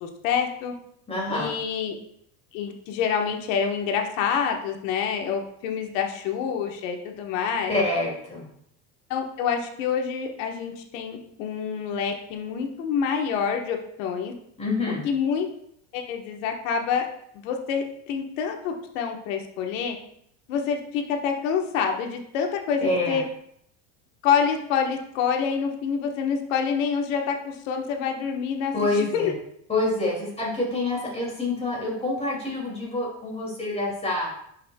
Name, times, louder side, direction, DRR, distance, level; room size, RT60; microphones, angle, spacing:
voice 1, 0.0-0.7 1.3-1.9 2.5-7.7 9.1-14.3 15.0-15.5 15.9-17.1 17.3-20.0 20.5-23.2 24.2-29.3, left 6 dB, 85° left, 3 dB, 1.4 m, -27 dB
voice 2, 1.1-1.5 7.7-8.5 14.6-15.0 22.8-23.2 28.7-29.3 29.7-34.3, left 2 dB, 15° left, -4 dB, 2.7 m, -27 dB
11.0 x 5.5 x 2.4 m, 0.70 s
supercardioid pair, 130°, 38 cm